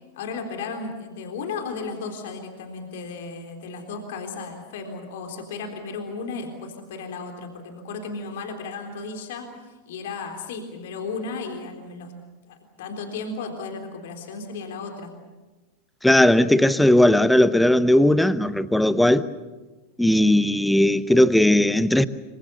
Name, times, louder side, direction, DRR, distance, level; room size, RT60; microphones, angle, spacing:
voice 1, 0.2-12.1 12.5-15.1, left 4 dB, 55° left, 3.7 m, -34 dB
voice 2, 16.0-19.3 20.0-22.1, left 1 dB, 5° left, 1.0 m, -17 dB
27.0 x 25.0 x 7.1 m
figure-of-eight pair, 90°, 0 cm